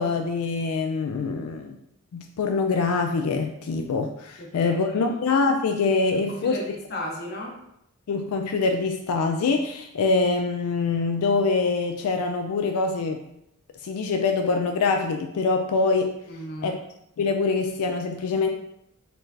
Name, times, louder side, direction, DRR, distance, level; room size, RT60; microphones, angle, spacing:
voice 1, 0.0-1.8 2.1-6.6 8.1-13.2 13.8-16.1 16.6-16.8 17.2-18.5, left 4 dB, 85° left, 4 dB, 0.3 m, -24 dB
voice 2, 4.4-5.1 6.3-7.6 16.3-16.8, left 1 dB, 45° left, 0 dB, 0.7 m, -35 dB
4.2 x 3.2 x 2.7 m, 0.79 s
head